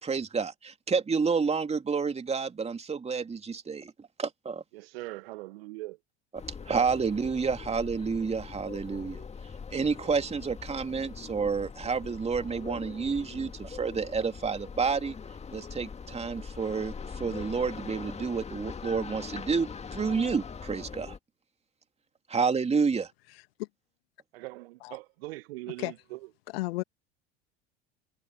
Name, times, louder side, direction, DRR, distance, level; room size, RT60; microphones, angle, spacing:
voice 1, 0.0-4.6 6.7-9.2 9.7-15.1 15.5-21.1 22.3-23.1, right 5 dB, 20° right, 2.8 m, -29 dB
voice 2, 4.7-6.0 24.3-26.2, right 20 dB, 60° right, 2.1 m, -41 dB
sound 1, 6.4-21.2, left 5 dB, 20° left, 2.0 m, -42 dB
voice 3, 23.3-23.7 24.8-25.0 25.8-25.9 26.5-26.8, left 21 dB, 60° left, 2.1 m, -34 dB
figure-of-eight pair, 75°, 34 cm